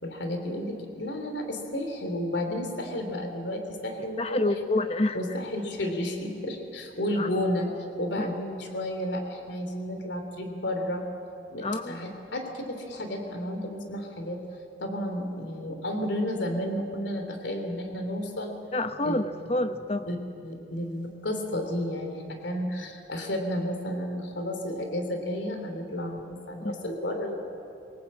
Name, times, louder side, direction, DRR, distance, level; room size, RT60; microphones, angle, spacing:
voice 1, 0.0-4.6 5.1-7.7 8.0-11.0 11.5-14.4 14.8-18.5 19.0-19.2 20.1-20.2 20.4-27.4, left 1 dB, 65° left, 5 dB, 3.1 m, -32 dB
voice 2, 4.2-5.2 7.2-7.3 8.2-8.3 11.6-12.0 18.7-20.1 26.6-26.9, left 2 dB, 30° left, 9 dB, 1.0 m, -28 dB
23.0 x 18.5 x 8.6 m, 2.6 s
head